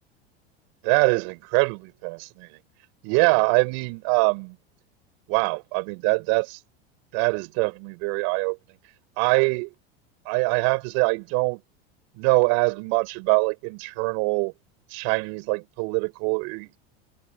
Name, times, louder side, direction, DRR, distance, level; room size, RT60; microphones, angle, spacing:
voice 1, 0.8-2.5 3.0-4.6 5.3-6.6 7.1-8.6 9.2-9.7 10.2-11.6 12.2-14.5 14.9-16.8, right 35 dB, 65° right, 6.8 m, -23 dB
hypercardioid pair, 100°, 31 cm